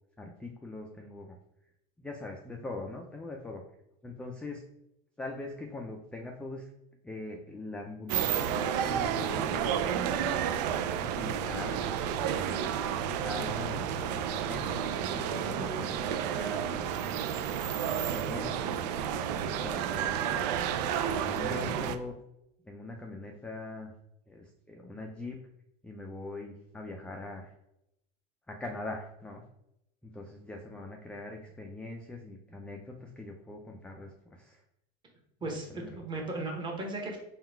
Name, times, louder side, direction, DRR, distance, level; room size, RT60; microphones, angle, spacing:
voice 1, 0.2-1.4 2.0-3.6 4.0-4.6 5.2-6.7 7.0-9.9 11.0-11.8 13.2-16.7 17.5-18.8 19.1-20.4 20.9-22.2 22.7-23.9 24.3-25.4 25.8-27.5 28.5-29.4 30.0-34.6 35.4-35.5 35.7-35.9, left 2 dB, 5° left, 1 dB, 0.3 m, -42 dB
sound 1, 8.1-22.0, right 8 dB, 90° right, 0.4 m, -31 dB
voice 2, 35.4-37.2, right 2 dB, 20° right, 0 dB, 1.1 m, -36 dB
3.8 x 2.3 x 4.4 m, 0.82 s
supercardioid pair, 140°, 21 cm